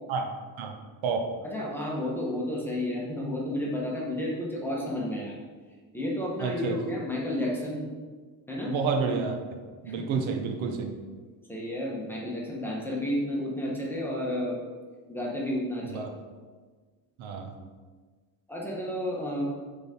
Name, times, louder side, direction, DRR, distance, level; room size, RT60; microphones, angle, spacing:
voice 1, 1.4-5.4 5.9-7.8 8.5-8.7 9.8-10.2 11.5-14.6 15.1-15.9 18.5-19.4, left 1 dB, 5° left, -4 dB, 1.1 m, -31 dB
voice 2, 6.4-6.8 8.7-9.4 9.8-10.9 15.8-16.1 17.2-17.5, right 5 dB, 75° right, 4 dB, 0.9 m, -29 dB
6.9 x 3.8 x 4.3 m, 1.4 s
cardioid pair, 155°, 47 cm